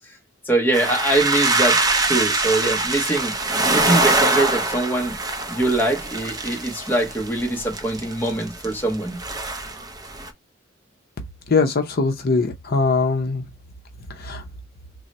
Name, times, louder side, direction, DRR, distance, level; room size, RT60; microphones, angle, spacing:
voice 1, 0.5-1.8 2.1-3.3 3.7-5.2 5.5-9.2, right 2 dB, 10° left, 0.8 m, -23 dB
sound 1, 0.7-10.3, right 2 dB, 20° right, 0.5 m, -24 dB
voice 2, 11.5-13.4 14.2-14.4, left 4 dB, 50° left, 0.6 m, -21 dB
3.7 x 2.0 x 4.2 m
head